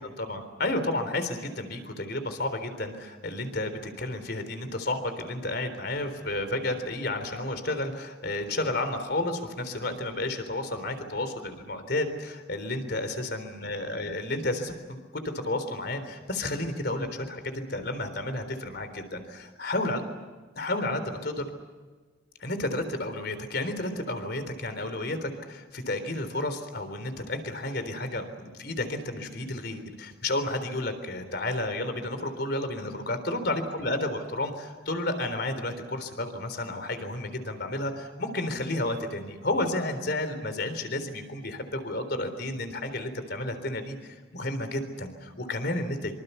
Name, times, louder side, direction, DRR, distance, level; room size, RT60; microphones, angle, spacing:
voice 1, 0.0-20.0 20.6-21.5 22.4-46.2, left 2 dB, 55° left, 9 dB, 3.8 m, -31 dB
25.5 x 25.5 x 7.0 m, 1.4 s
head